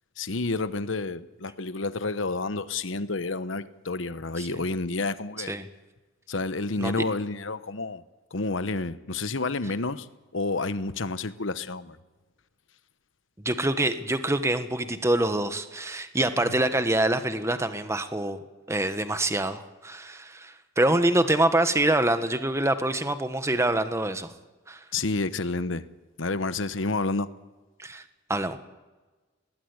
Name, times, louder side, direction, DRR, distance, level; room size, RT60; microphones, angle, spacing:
voice 1, 0.2-5.5 6.3-8.0 8.3-10.1 10.3-12.0 16.4-16.5 24.9-25.9 26.2-27.3, left 3 dB, 70° left, 1.1 m, -29 dB
voice 2, 13.4-18.4 18.7-24.3 24.7-24.8 27.8-28.0 28.3-28.6, right 1 dB, 15° right, 1.4 m, -25 dB
20.0 x 17.5 x 9.7 m
head